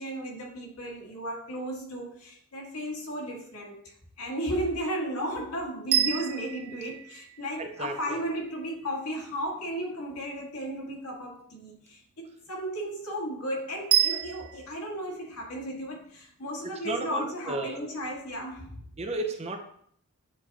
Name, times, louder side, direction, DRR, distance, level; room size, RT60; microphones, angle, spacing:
voice 1, 0.0-18.8, equal, 80° left, -2 dB, 1.8 m, -34 dB
sound 1, 5.9-8.1 13.9-14.7, right 12 dB, 80° right, 0.5 m, -28 dB
voice 2, 7.6-8.2 16.8-17.8 19.0-19.6, right 2 dB, 30° right, 4 dB, 0.7 m, -33 dB
8.2 x 4.1 x 2.9 m, 0.62 s
head